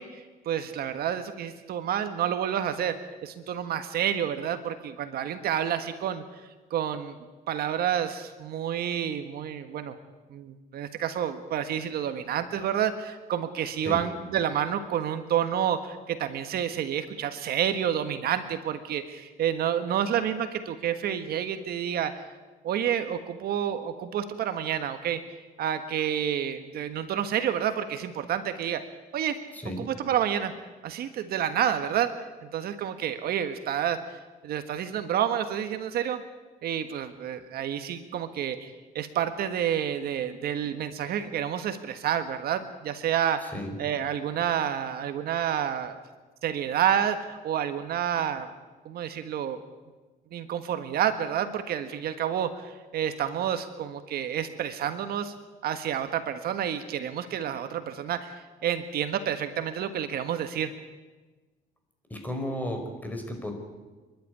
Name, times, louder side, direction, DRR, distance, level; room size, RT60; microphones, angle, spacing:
voice 1, 0.0-6.2 6.7-7.2 7.5-9.9 10.3-22.2 22.6-25.2 25.6-28.8 29.1-29.4 29.6-30.5 30.8-32.1 32.5-36.2 36.6-38.7 38.9-43.5 43.8-46.0 46.4-48.5 48.8-49.6 50.3-55.3 55.6-60.7, right 9 dB, 65° right, 9 dB, 1.5 m, -29 dB
voice 2, 29.5-29.8 43.5-43.7 62.1-63.5, left 1 dB, 10° left, 4 dB, 5.2 m, -33 dB
28.5 x 12.0 x 9.7 m, 1.3 s
cardioid pair, 110°, 17 cm